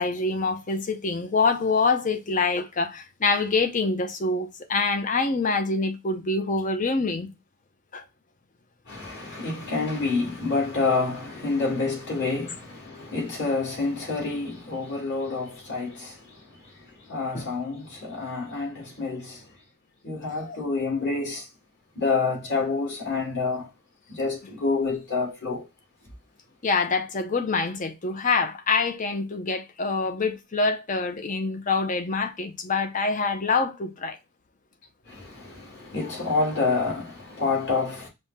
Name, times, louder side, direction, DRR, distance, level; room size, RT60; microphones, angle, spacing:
voice 1, 0.0-7.3 7.9-8.0 17.3-17.5 20.4-20.6 26.6-34.2, left 4 dB, 35° left, 0.7 m, -25 dB
voice 2, 8.9-19.5 20.0-21.5 21.9-23.7 24.1-25.7 35.0-38.1, left 3 dB, 50° left, 2.5 m, -28 dB
5.4 x 2.2 x 4.0 m
head